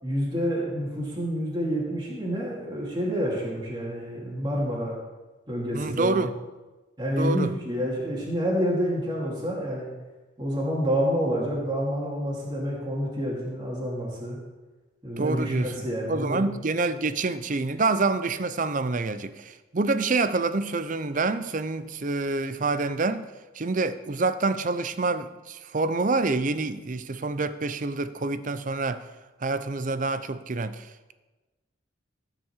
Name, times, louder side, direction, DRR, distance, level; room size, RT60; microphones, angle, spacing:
voice 1, 0.0-5.0 5.5-6.3 7.0-9.9 10.4-14.4 15.0-16.5, equal, 20° right, 2.6 m, -28 dB
voice 2, 5.7-6.3 7.2-7.5 15.2-23.3 23.5-29.1 29.4-30.9, right 3 dB, 40° right, 0.6 m, -27 dB
14.0 x 6.0 x 7.2 m
head